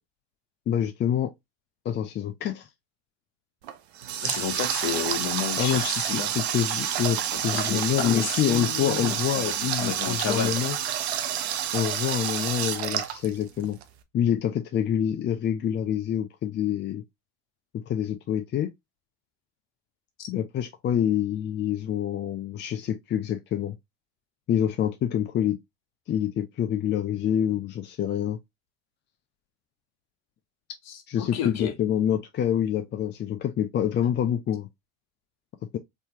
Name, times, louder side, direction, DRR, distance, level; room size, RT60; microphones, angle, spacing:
voice 1, 0.7-1.3 1.8-2.7 5.5-5.8 6.1-10.8 11.7-13.8 14.1-17.0 17.7-18.7 20.3-23.8 24.5-25.6 26.1-28.4 31.1-34.7, left 9 dB, 35° left, 0.5 m, -26 dB
Water tap faucet, 3.6-13.8, right 10 dB, 90° right, 0.5 m, -29 dB
voice 2, 4.2-6.3 7.3-10.5 20.2-20.3 30.9-31.7, left 8 dB, 55° left, 1.1 m, -32 dB
3.3 x 2.8 x 2.8 m
hypercardioid pair, 75°, 31 cm